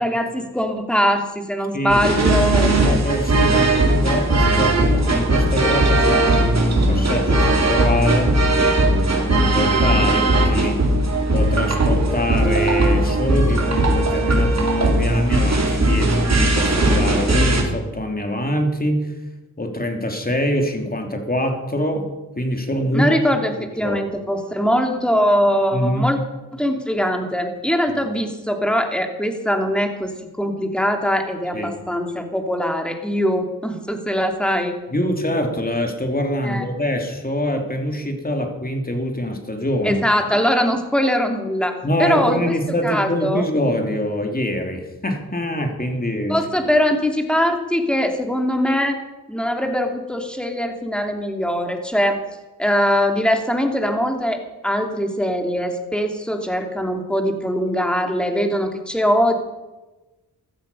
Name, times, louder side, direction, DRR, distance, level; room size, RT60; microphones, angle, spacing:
voice 1, 0.0-2.7 22.9-26.2 26.5-30.1 30.4-34.7 36.4-36.7 39.8-42.4 42.8-43.4 46.3-49.0 49.3-52.2 52.6-59.3, equal, ahead, 4 dB, 2.8 m, -21 dB
voice 2, 1.7-2.3 2.8-8.4 9.2-10.8 11.3-19.1 19.6-23.1 23.8-24.0 25.7-26.0 27.9-28.0 31.5-31.7 34.9-40.0 41.8-46.4, left 1 dB, 25° left, 4 dB, 3.0 m, -24 dB
sound 1, 1.9-17.6, right 1 dB, 45° right, 3.5 m, -18 dB
15.5 x 13.0 x 5.6 m, 1.1 s
cardioid pair, 65°, 38 cm